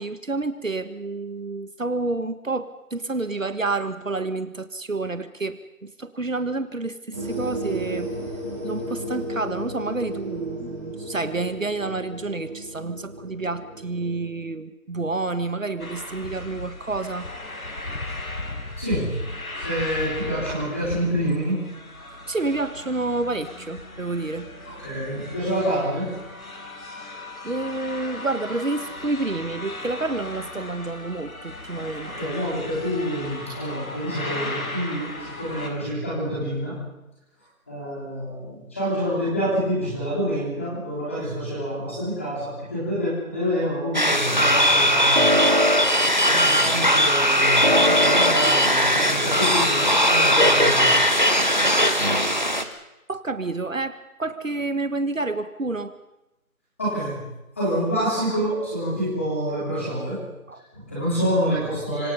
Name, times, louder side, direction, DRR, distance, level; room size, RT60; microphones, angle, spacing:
voice 1, 0.0-8.1 8.6-17.3 22.1-24.5 27.4-32.3 53.1-55.9 60.5-60.6, right 3 dB, 65° right, 11 dB, 1.5 m, -29 dB
sound 1, 7.1-14.3, right 1 dB, 10° right, 3.4 m, -33 dB
sound 2, 15.8-35.7, left 2 dB, 75° left, 5.7 m, -36 dB
voice 2, 18.8-19.1 19.6-21.6 24.6-26.1 32.0-36.8 37.7-45.3 46.2-50.9 56.8-57.2 57.6-60.2 60.7-62.1, equal, 10° left, -8 dB, 3.8 m, -27 dB
sound 3, 43.9-52.6, equal, 30° right, 1.1 m, -19 dB
26.0 x 25.5 x 5.5 m, 0.95 s
figure-of-eight pair, 180°, 43 cm